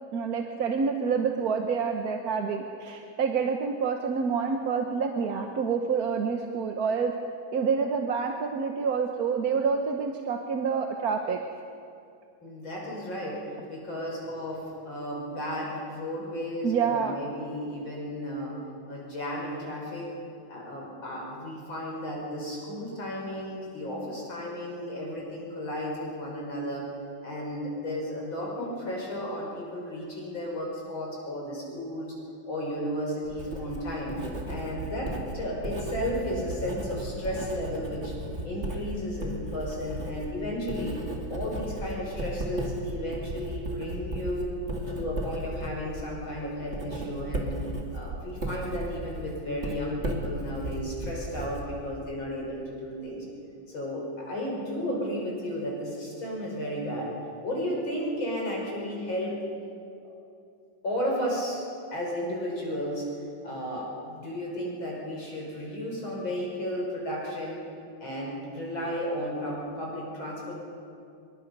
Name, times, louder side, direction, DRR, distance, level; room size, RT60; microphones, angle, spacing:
voice 1, 0.1-7.1 7.5-11.4 16.6-17.2, right 5 dB, 55° right, 3 dB, 1.4 m, -27 dB
voice 2, 12.4-13.4 13.7-18.6 18.9-20.1 20.5-26.9 27.2-32.1 32.5-34.2 34.5-38.1 38.4-41.0 41.3-44.5 44.9-47.5 47.9-53.2 53.7-57.1 57.4-59.4 60.8-61.6 61.9-63.1 63.4-67.6 68.0-70.5, equal, 85° left, -2 dB, 6.2 m, -33 dB
Writing, 33.2-52.1, right 1 dB, 35° right, 2.6 m, -36 dB
25.5 x 23.0 x 5.4 m, 2.5 s
omnidirectional pair, 2.1 m